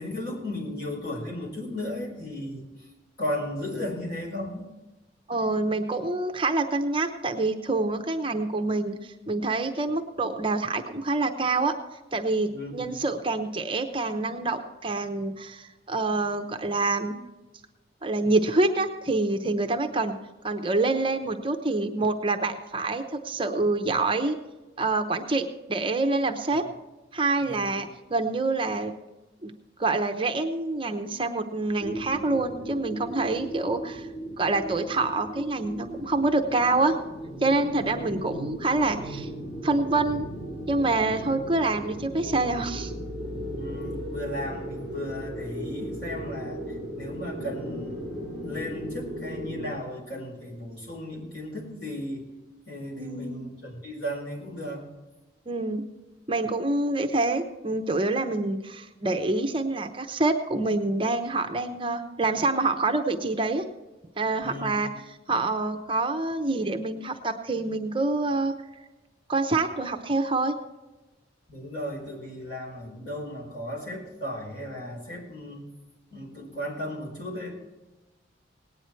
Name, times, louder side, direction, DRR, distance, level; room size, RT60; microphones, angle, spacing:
voice 1, 0.0-2.6 3.2-4.7 12.5-13.0 27.4-27.8 37.8-38.0 43.5-46.6 46.9-48.1 48.4-52.3 52.7-54.8 64.4-64.8 71.5-75.6 76.1-77.6, left 1 dB, 65° left, -3 dB, 4.5 m, -35 dB
voice 2, 5.3-11.7 12.1-17.2 18.0-20.2 20.4-24.4 24.8-26.6 27.1-28.9 29.4-29.5 29.8-34.1 34.4-37.0 37.4-39.3 39.6-40.3 40.7-42.9 53.0-53.4 55.5-55.8 56.3-63.6 64.2-64.9 65.3-68.5 69.3-70.5, right 2 dB, 25° right, 6 dB, 0.8 m, -26 dB
sound 1, 31.8-49.7, equal, 80° left, 3.5 m, -36 dB
18.5 x 9.7 x 4.5 m, 1.1 s
head